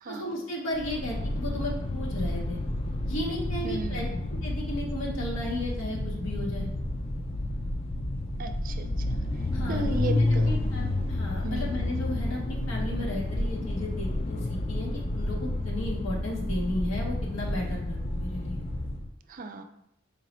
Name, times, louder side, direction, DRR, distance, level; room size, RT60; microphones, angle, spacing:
voice 1, 0.1-2.6 3.0-4.0 4.3-6.7 9.5-18.6, left 1 dB, 75° left, -2 dB, 0.8 m, -34 dB
sound 1, 0.7-19.1, left 1 dB, 30° left, 0.3 m, -30 dB
voice 2, 3.6-4.0 8.4-9.2 9.7-10.5 11.4-11.7 19.3-19.6, right 2 dB, 40° right, 7 dB, 0.4 m, -35 dB
4.5 x 3.0 x 3.0 m, 0.79 s
head